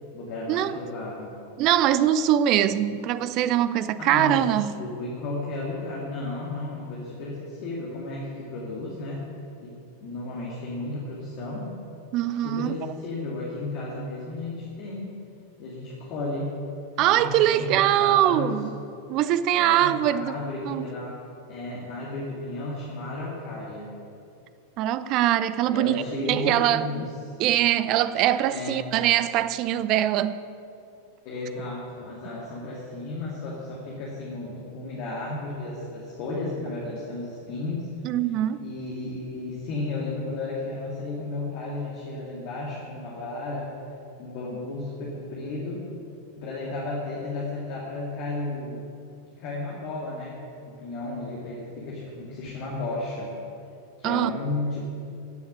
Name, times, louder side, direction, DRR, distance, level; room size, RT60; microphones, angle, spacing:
voice 1, 0.1-1.3 2.6-2.7 4.0-4.4 4.8-9.3 9.6-11.8 12.4-15.2 15.6-16.6 16.9-18.5 19.5-21.2 21.5-23.9 25.7-27.3 28.4-28.8 31.2-37.9 38.6-43.8 44.1-45.9 46.4-48.9 49.4-53.4 54.0-54.9, left 2 dB, 45° left, -4 dB, 2.6 m, -33 dB
voice 2, 1.6-4.7 12.1-12.8 17.0-18.7 19.1-20.3 20.6-20.9 24.8-26.9 27.4-30.4 38.0-38.7 54.0-54.3, right 12 dB, 40° right, 15 dB, 0.5 m, -22 dB
17.0 x 7.2 x 8.5 m, 2.7 s
figure-of-eight pair, 90°, 0 cm